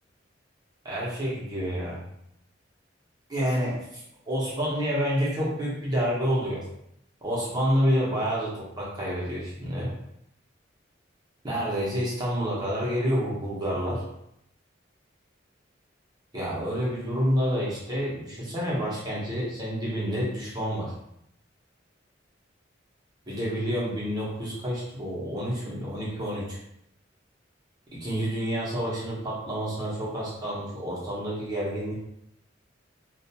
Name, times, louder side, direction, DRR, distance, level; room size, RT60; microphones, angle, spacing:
voice 1, 0.8-2.0 3.3-6.6 7.2-9.9 11.4-14.0 16.3-20.9 23.3-26.6 27.9-31.9, equal, 20° right, -6 dB, 0.8 m, -28 dB
2.4 x 2.2 x 2.8 m, 0.77 s
head